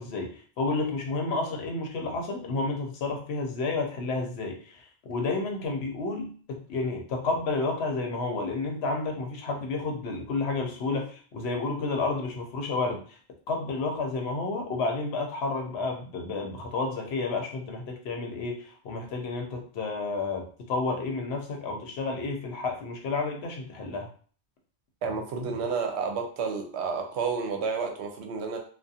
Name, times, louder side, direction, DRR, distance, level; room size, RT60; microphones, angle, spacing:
voice 1, 0.0-13.2 13.5-24.1, left 3 dB, 75° left, 3 dB, 0.9 m, -31 dB
voice 2, 25.0-28.6, right 5 dB, 80° right, 3 dB, 0.8 m, -30 dB
2.4 x 2.3 x 2.6 m, 0.43 s
omnidirectional pair, 1.1 m